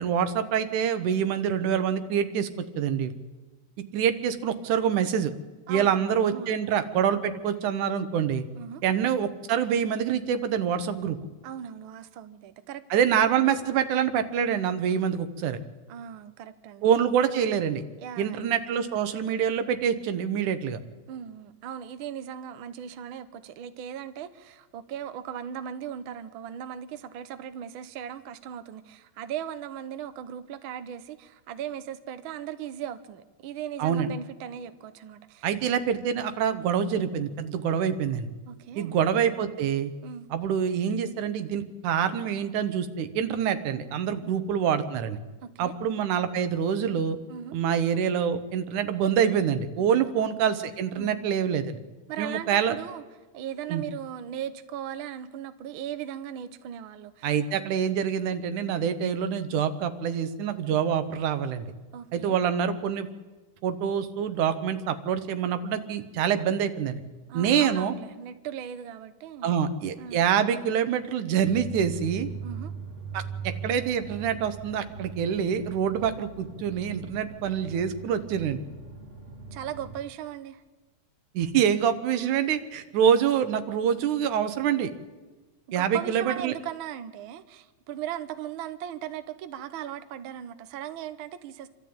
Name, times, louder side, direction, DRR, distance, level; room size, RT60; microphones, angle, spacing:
voice 1, 0.0-2.5 2.8-3.1 3.9-5.3 5.7-8.4 8.8-11.2 12.9-15.6 16.8-17.8 18.2-20.8 33.8-34.1 35.4-38.3 38.8-39.9 40.3-45.2 45.6-47.2 47.5-51.8 52.2-52.7 53.7-53.8 57.2-61.6 62.1-63.1 63.6-67.0 67.3-67.9 69.4-72.3 73.1-73.2 73.6-78.6 81.3-84.9 85.7-86.5, right 8 dB, 90° right, 10 dB, 2.6 m, -26 dB
voice 2, 5.7-6.5 8.6-8.8 11.4-13.0 15.9-16.8 18.0-18.4 21.1-35.5 38.5-39.0 40.0-40.3 44.2-44.4 45.4-45.8 47.3-47.6 49.8-50.3 51.0-51.3 52.1-53.0 53.3-57.3 61.9-62.4 67.3-69.5 70.0-70.2 72.4-72.7 79.5-80.6 85.7-91.7, right 9 dB, 65° right, 11 dB, 1.3 m, -38 dB
sound 1, 71.4-80.0, right 5 dB, 35° right, 1.3 m, -40 dB
26.5 x 13.0 x 8.8 m, 1.2 s
omnidirectional pair, 3.4 m